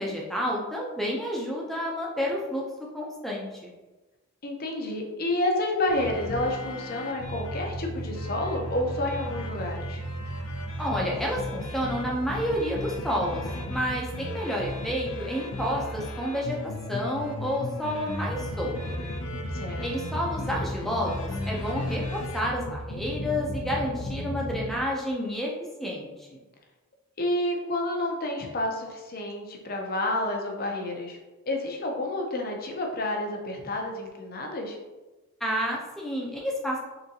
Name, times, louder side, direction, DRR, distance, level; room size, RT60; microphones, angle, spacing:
voice 1, 0.0-2.6 2.9-3.7 10.8-18.7 19.8-25.5 25.8-26.4 35.4-36.8, equal, ahead, -3 dB, 0.6 m, -30 dB
voice 2, 4.4-10.0 19.5-19.8 27.2-31.2 31.5-34.8, left 1 dB, 40° left, 2 dB, 0.6 m, -29 dB
sound 1, 5.9-24.8, left 1 dB, 80° left, 0.6 m, -34 dB
3.9 x 3.5 x 2.8 m, 1.2 s
head